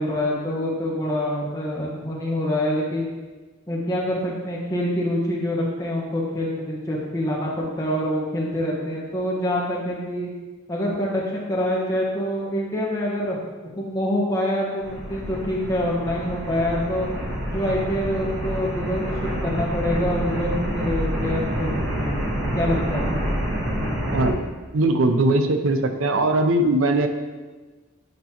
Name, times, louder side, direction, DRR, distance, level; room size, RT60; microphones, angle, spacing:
voice 1, 0.0-3.1 3.7-10.3 10.7-13.4 13.6-17.1 17.5-21.7 22.0-22.2 22.6-23.0, left 1 dB, 15° left, -5 dB, 1.2 m, -26 dB
sound 1, 14.8-24.3, equal, 60° right, 1.4 m, -27 dB
voice 2, 24.7-27.1, right 2 dB, 85° right, 6 dB, 0.6 m, -20 dB
7.9 x 5.2 x 2.9 m, 1.3 s
head